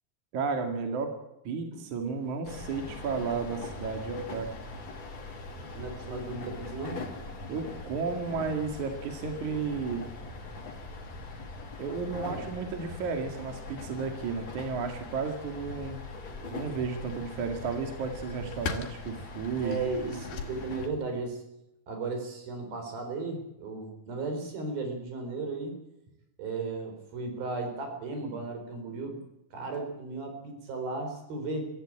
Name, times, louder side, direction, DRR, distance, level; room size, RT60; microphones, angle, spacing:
voice 1, 0.3-1.1 1.5-4.5 7.5-10.1 11.8-16.0 16.5-19.8, right 5 dB, 60° right, 5 dB, 3.4 m, -33 dB
sound 1, 2.4-20.9, left 3 dB, 35° left, 3.1 m, -42 dB
voice 2, 5.7-7.0 12.1-12.4 19.6-21.4 21.9-25.8 26.4-29.2 29.5-31.7, right 3 dB, 85° right, 5 dB, 6.1 m, -35 dB
sound 2, 16.0-21.3, left 5 dB, 70° left, 3.8 m, -43 dB
24.0 x 15.0 x 8.8 m, 0.88 s
omnidirectional pair, 4.1 m